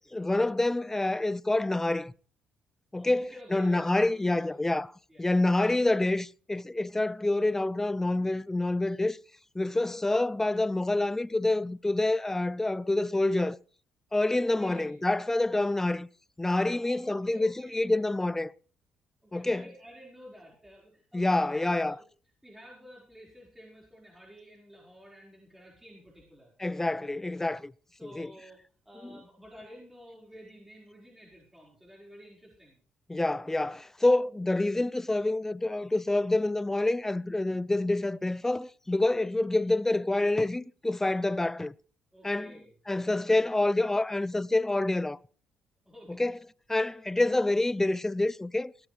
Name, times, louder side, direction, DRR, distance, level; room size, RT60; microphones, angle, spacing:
voice 1, 0.1-2.1 2.9-4.9 5.2-9.2 9.5-13.6 14.1-16.1 16.4-18.5 19.3-19.6 21.1-22.0 26.6-27.7 28.0-28.3 29.0-29.2 33.1-41.7 42.2-42.5 42.9-45.2 46.2-46.3 46.7-48.7, left 2 dB, 15° left, 0.5 m, -27 dB
voice 2, 3.0-4.5 5.1-5.3 14.3-15.0 16.5-18.0 19.2-22.0 22.4-26.5 27.2-27.3 28.0-28.6 28.8-32.8 42.1-42.7 45.8-46.3, equal, 10° right, 4.8 m, -51 dB
17.5 x 13.5 x 3.3 m
supercardioid pair, 65°, 3 cm